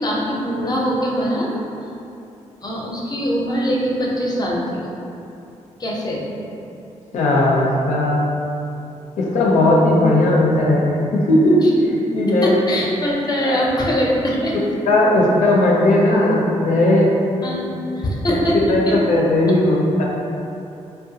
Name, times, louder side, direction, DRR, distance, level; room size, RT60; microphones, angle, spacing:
voice 1, 0.0-1.5 2.6-4.9 5.8-6.2 11.6-11.7 12.4-14.6 17.4-17.6 18.0-19.0, equal, 30° left, -4 dB, 0.6 m, -22 dB
voice 2, 7.1-8.3 9.2-12.5 13.4-13.6 14.9-17.1 18.3-20.0, left 1 dB, 80° left, -3 dB, 0.5 m, -17 dB
2.7 x 2.2 x 2.7 m, 2.6 s
cardioid pair, 80°, 13 cm